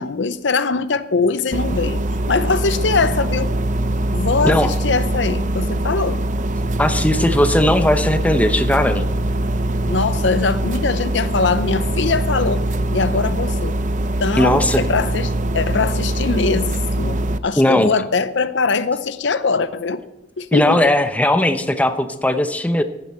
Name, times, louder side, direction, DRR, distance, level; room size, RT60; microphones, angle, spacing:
voice 1, 0.0-3.5 4.1-6.2 9.9-12.6 12.9-13.8 14.2-20.0 20.4-20.8, left 4 dB, 70° left, 0.7 m, -21 dB
sound 1, 1.5-17.4, right 1 dB, 45° right, 0.6 m, -22 dB
voice 2, 6.8-9.0 14.4-14.9 17.6-17.9 20.5-22.8, left 1 dB, 10° left, 0.8 m, -17 dB
15.5 x 12.0 x 4.4 m
head